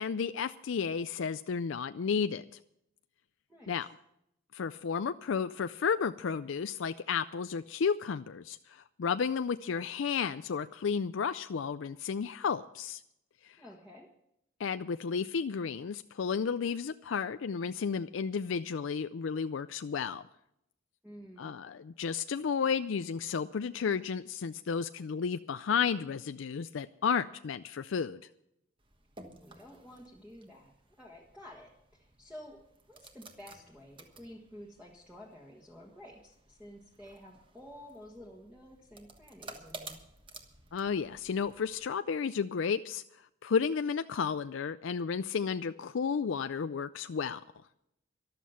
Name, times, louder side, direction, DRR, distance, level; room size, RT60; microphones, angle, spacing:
voice 1, 0.0-2.4 3.7-3.9 4.5-13.0 13.4-13.6 14.6-20.2 21.4-28.2 40.7-43.0 43.4-47.4, left 6 dB, 75° left, 11 dB, 0.4 m, -32 dB
voice 2, 3.5-3.8 13.6-14.1 21.0-21.5 29.3-40.0, equal, 5° right, -3 dB, 1.5 m, -51 dB
sound 1, 28.8-41.9, right 3 dB, 25° right, 1.3 m, -54 dB
13.5 x 12.0 x 5.7 m, 0.78 s
head